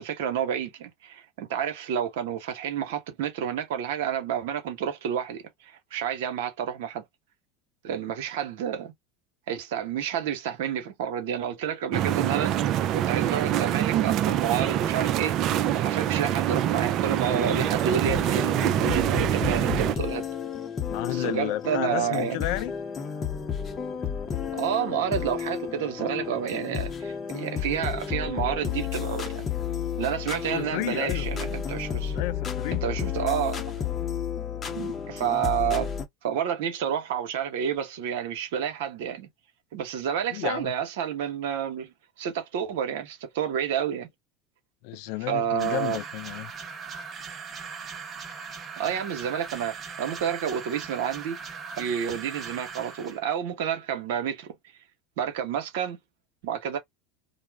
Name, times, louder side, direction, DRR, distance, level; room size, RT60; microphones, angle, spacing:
voice 1, 0.0-7.0 7.8-8.9 9.5-12.6 12.9-20.2 21.1-22.5 24.5-29.5 30.0-32.2 32.8-33.9 34.7-35.9 36.2-39.3 39.7-44.1 45.3-46.0 48.8-51.4 51.8-54.5 55.2-56.0 56.4-56.8, right 8 dB, 75° right, 0.9 m, -30 dB
sound 1, 11.9-19.9, right 11 dB, 55° right, 0.3 m, -25 dB
sound 2, 17.2-36.0, left 8 dB, 35° left, 0.7 m, -32 dB
voice 2, 20.9-22.7 30.5-31.3 32.1-32.9 40.3-40.7 44.8-46.5, left 15 dB, 65° left, 0.3 m, -32 dB
sound 3, 45.6-53.2, right 5 dB, 35° right, 0.8 m, -39 dB
2.3 x 2.0 x 3.3 m
hypercardioid pair, 90°, 0 cm